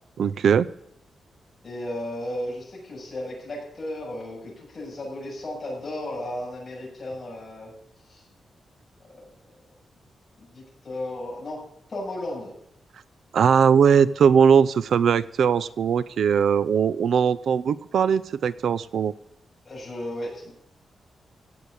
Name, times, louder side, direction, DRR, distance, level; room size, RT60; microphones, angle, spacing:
voice 1, 0.2-0.7 13.3-19.1, right 7 dB, 70° right, 16 dB, 0.5 m, -20 dB
voice 2, 1.6-7.7 8.1-8.2 9.1-9.3 10.5-11.6 11.9-12.5 19.6-20.5, left 1 dB, 30° left, -3 dB, 7.7 m, -34 dB
17.0 x 8.1 x 8.6 m, 0.74 s
wide cardioid pair, 155°, 0 cm